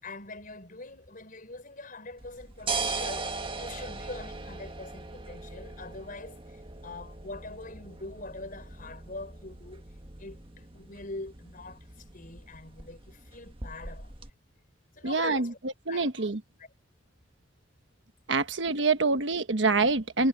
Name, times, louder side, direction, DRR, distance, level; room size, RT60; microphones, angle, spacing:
voice 1, 0.0-6.4 6.8-9.8 10.2-11.8 12.1-14.1 15.0-15.6 15.9-16.3, left 2 dB, 45° left, 5.9 m, -43 dB
sound 1, 2.2-14.3, right 3 dB, 30° right, 1.6 m, -39 dB
voice 2, 15.0-16.4 18.3-20.3, right 3 dB, 70° right, 1.2 m, -26 dB
head